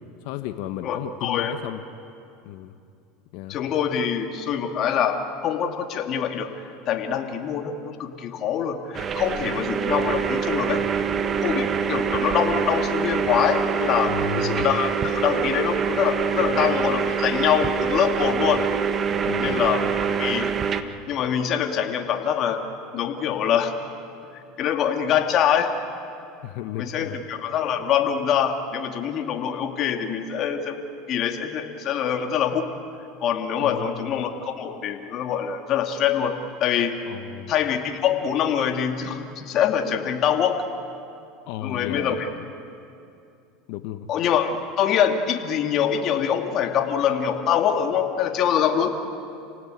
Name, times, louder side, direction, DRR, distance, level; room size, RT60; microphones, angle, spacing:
voice 1, 0.2-1.8 2.4-2.8 3.3-3.6 9.4-9.5 14.0-14.6 16.5-16.7 19.2-19.9 26.4-27.2 33.6-34.2 37.1-37.5 41.5-42.5 43.7-44.1, left 11 dB, 65° left, 8 dB, 1.2 m, -34 dB
voice 2, 0.8-1.5 3.5-6.5 6.9-10.8 11.4-14.1 14.4-18.6 19.4-19.8 20.2-20.5 21.1-22.6 22.9-23.7 24.6-25.7 26.8-30.8 31.1-32.7 33.2-36.9 37.5-40.6 41.6-42.3 44.1-49.0, left 8 dB, 50° left, 5 dB, 2.6 m, -24 dB
sound 1, 8.9-20.8, right 7 dB, 35° right, 1.4 m, -25 dB
30.0 x 17.5 x 9.3 m, 2.6 s
supercardioid pair, 105°, 0 cm